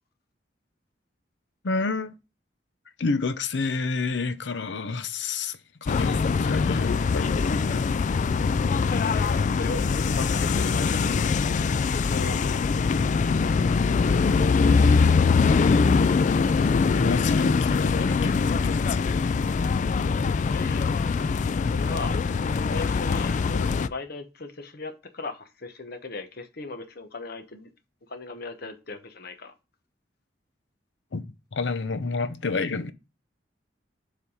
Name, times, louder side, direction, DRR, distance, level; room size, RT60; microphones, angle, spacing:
voice 1, 1.6-2.1 3.0-7.9 14.4-14.6 17.0-19.0 31.1-32.9, left 4 dB, 85° left, 0.7 m, -30 dB
sound 1, 5.9-23.9, left 5 dB, 45° left, 0.3 m, -23 dB
voice 2, 8.8-11.2 11.9-12.7 20.4-21.3 21.6-22.2 22.6-27.7 28.1-29.5, left 3 dB, 60° left, 1.0 m, -38 dB
7.3 x 3.4 x 5.4 m
head